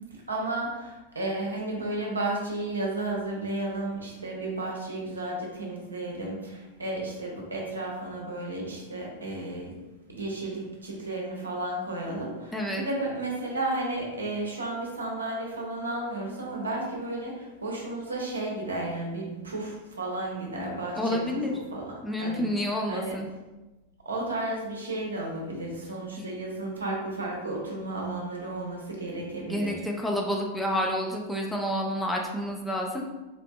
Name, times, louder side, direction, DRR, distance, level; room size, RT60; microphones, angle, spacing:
voice 1, 0.3-9.8 10.1-21.9 22.2-23.2 24.0-29.8, right 2 dB, 75° right, -1 dB, 0.7 m, -33 dB
voice 2, 12.5-12.9 20.9-21.5 22.0-23.3 26.2-26.3 29.4-33.0, equal, 5° left, -1 dB, 0.4 m, -29 dB
3.8 x 2.5 x 2.2 m, 1.1 s
figure-of-eight pair, 90°, 0 cm